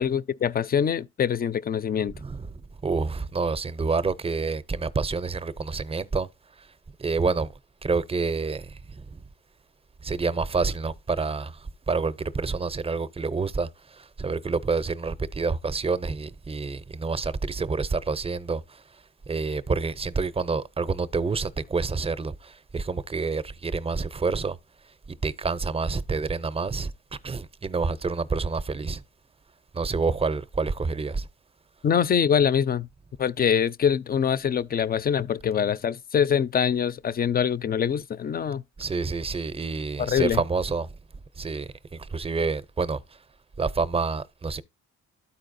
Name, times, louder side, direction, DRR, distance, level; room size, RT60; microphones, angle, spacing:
voice 1, 0.0-2.1 31.8-32.9 33.2-38.6 40.0-40.4, left 8 dB, 30° left, 0.4 m, -24 dB
voice 2, 2.1-6.3 7.0-7.5 7.8-9.2 10.0-18.8 19.3-24.6 25.2-26.9 27.2-29.0 29.7-31.3 38.8-40.9 41.4-41.7 42.0-43.0 43.6-44.6, right 4 dB, 20° right, 0.5 m, -28 dB
13.0 x 4.4 x 2.6 m
cardioid pair, 90°, 30 cm